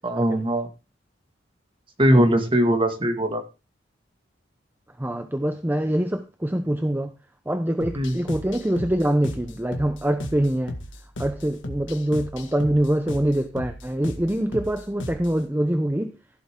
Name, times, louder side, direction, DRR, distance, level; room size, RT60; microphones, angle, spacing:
voice 1, 0.0-0.7 2.0-3.4 7.9-8.2, equal, 25° right, 2.1 m, -20 dB
voice 2, 5.0-7.1 7.5-10.7 11.2-16.1, right 1 dB, 10° right, 0.7 m, -24 dB
sound 1, 7.8-15.4, left 1 dB, 70° left, 2.0 m, -36 dB
15.5 x 7.8 x 3.7 m
head